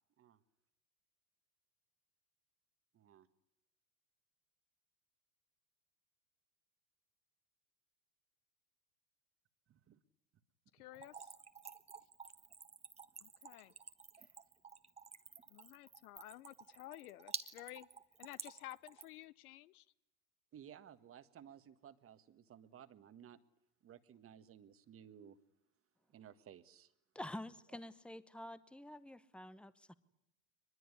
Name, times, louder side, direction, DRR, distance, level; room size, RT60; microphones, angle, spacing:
voice 1, 2.9-3.3 9.7-10.0 14.2-14.3 20.5-23.4 23.8-25.4 26.1-26.9 27.7-27.8, right 9 dB, 30° right, 1.5 m, -57 dB
voice 2, 10.7-11.3 13.2-13.7 15.5-17.9 18.2-19.9, left 15 dB, 70° left, 1.0 m, -53 dB
Splash splatter / Trickle dribble, 10.9-19.2, right 5 dB, 15° right, 1.4 m, -50 dB
voice 3, 27.1-29.9, left 1 dB, ahead, 1.0 m, -48 dB
23.0 x 21.0 x 9.8 m
hypercardioid pair, 110°, 45 cm